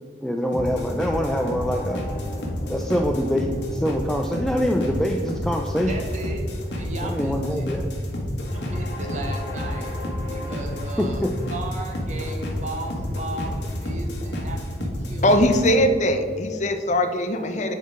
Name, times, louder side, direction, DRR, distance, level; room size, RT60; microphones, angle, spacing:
voice 1, 0.2-2.0 2.7-6.0 7.0-7.9 11.0-11.3, equal, 5° left, 2 dB, 0.3 m, -25 dB
sound 1, 0.5-15.8, left 1 dB, 85° left, 1.5 m, -29 dB
voice 2, 5.8-7.7 8.5-15.7, right 2 dB, 45° right, 1 dB, 1.2 m, -36 dB
voice 3, 15.2-17.7, left 1 dB, 45° left, 7 dB, 0.6 m, -21 dB
9.3 x 4.0 x 4.8 m, 2.2 s
head